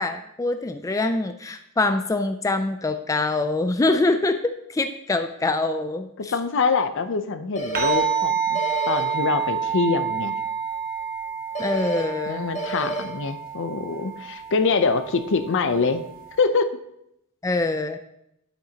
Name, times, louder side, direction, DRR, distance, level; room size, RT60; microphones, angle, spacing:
voice 1, 0.0-6.3 11.6-12.5 17.4-18.0, left 2 dB, 15° left, 7 dB, 0.3 m, -24 dB
voice 2, 6.3-8.6 8.9-10.3 12.3-16.0 16.4-16.7, left 4 dB, 60° left, 10 dB, 0.6 m, -24 dB
sound 1, 7.6-8.0 8.6-9.0 11.6-12.0 12.6-13.0, right 2 dB, 30° left, 1.7 m, -29 dB
sound 2, 7.7-16.4, right 7 dB, 40° right, 1.2 m, -29 dB
10.5 x 8.7 x 2.8 m, 0.79 s
head